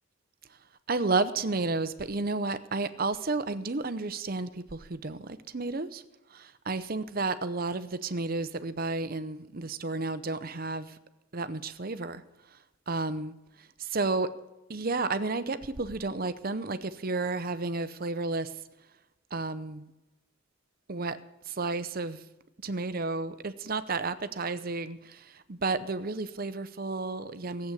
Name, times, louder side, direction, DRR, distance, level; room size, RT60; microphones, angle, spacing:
voice 1, 0.9-6.0 6.3-11.0 11.3-12.2 12.5-12.6 12.9-14.3 14.7-18.5 19.3-19.8 20.9-21.2 21.4-22.2 22.6-27.7, right 3 dB, 45° right, 13 dB, 0.8 m, -32 dB
16.0 x 8.0 x 8.3 m, 1.0 s
head